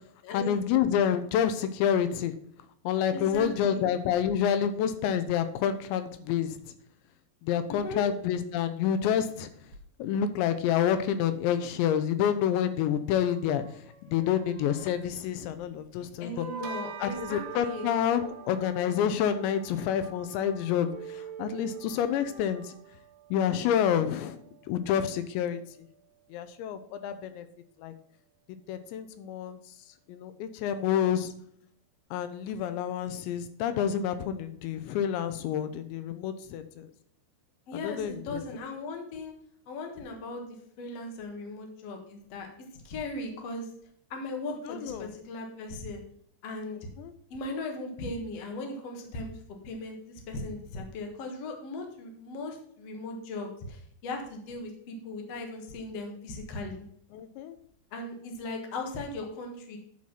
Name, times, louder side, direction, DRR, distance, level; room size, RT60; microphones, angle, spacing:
voice 1, 0.3-2.3 2.8-6.7 7.4-9.5 10.0-16.5 17.0-22.7 23.3-24.4 24.7-25.9 26.3-27.5 27.8-27.9 28.7-29.6 29.9-31.3 32.1-36.9 37.8-38.4 44.6-45.1 46.7-47.1 57.1-57.6, left 9 dB, 85° left, 10 dB, 2.9 m, -28 dB
voice 2, 3.1-3.9 7.7-8.0 16.2-17.9 37.7-39.3 39.7-40.4 40.8-42.5 42.7-43.7 44.1-46.0 46.4-46.8 47.3-49.3 49.6-56.8 57.9-59.8, left 2 dB, 65° left, 2 dB, 1.5 m, -38 dB
sound 1, 9.7-9.8 13.2-16.0 16.3-19.2 19.8-22.8, right 5 dB, 60° right, 3.7 m, -45 dB
Bell, 16.6-26.3, right 12 dB, 75° right, 2.8 m, -49 dB
11.0 x 4.3 x 5.7 m, 0.67 s
omnidirectional pair, 5.1 m